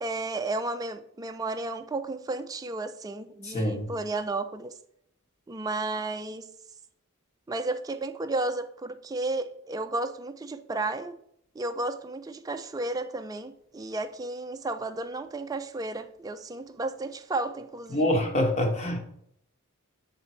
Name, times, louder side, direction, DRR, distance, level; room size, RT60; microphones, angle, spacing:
voice 1, 0.0-4.7 5.5-6.5 7.5-11.2 11.6-18.1, right 2 dB, 15° right, 0.4 m, -33 dB
voice 2, 3.4-3.9 17.9-19.0, left 1 dB, 30° left, 1.2 m, -25 dB
8.2 x 4.1 x 4.3 m
head